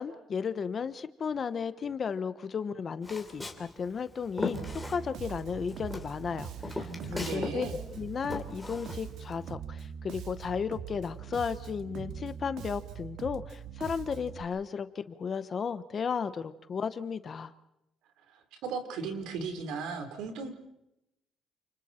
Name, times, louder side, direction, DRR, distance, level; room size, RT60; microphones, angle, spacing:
voice 1, 0.0-17.5, left 6 dB, 30° left, 13 dB, 1.0 m, -34 dB
Walk footsteps, 3.0-5.4 5.7-7.6 7.9-9.4, left 3 dB, 5° left, 2.9 m, -38 dB
Bass guitar, 4.5-14.4, right 8 dB, 65° right, 2.0 m, -42 dB
voice 2, 6.8-7.8 18.3-20.5, right 5 dB, 85° right, 7 dB, 4.0 m, -37 dB
29.5 x 28.5 x 4.4 m, 0.84 s
cardioid pair, 170°, 0 cm